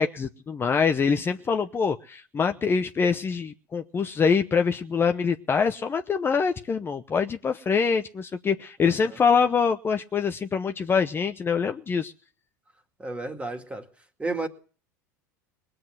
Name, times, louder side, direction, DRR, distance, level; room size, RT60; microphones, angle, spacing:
voice 1, 0.0-12.1, left 5 dB, 25° left, 7 dB, 0.8 m, -24 dB
voice 2, 13.0-13.9 14.2-14.5, right 2 dB, 15° right, 6 dB, 2.2 m, -32 dB
20.0 x 7.8 x 7.7 m, 0.40 s
hypercardioid pair, 95°, 9 cm